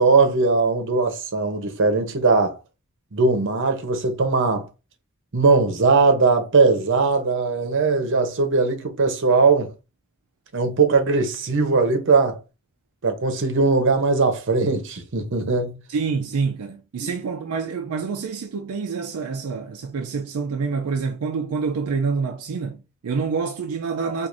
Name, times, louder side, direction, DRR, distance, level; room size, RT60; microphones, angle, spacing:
voice 1, 0.0-2.6 3.1-4.7 5.3-9.7 10.5-12.4 13.0-15.7 17.0-17.1, right 4 dB, 60° right, 0.8 m, -19 dB
voice 2, 15.9-24.3, right 5 dB, 85° right, 0.4 m, -27 dB
4.6 x 2.5 x 2.5 m
head